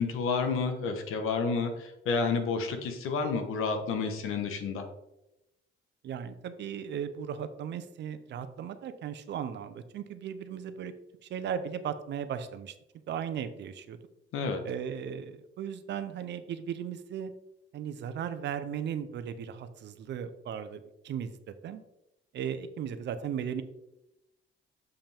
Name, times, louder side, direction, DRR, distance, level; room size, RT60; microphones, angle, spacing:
voice 1, 0.0-4.8 14.3-14.6, left 4 dB, 85° left, 6 dB, 1.2 m, -30 dB
voice 2, 6.0-10.9 11.2-12.7 13.1-14.0 14.6-17.3 17.7-21.8 22.3-23.6, right 8 dB, 60° right, 11 dB, 0.6 m, -36 dB
7.0 x 5.6 x 3.5 m, 0.89 s
cardioid pair, 155°, 21 cm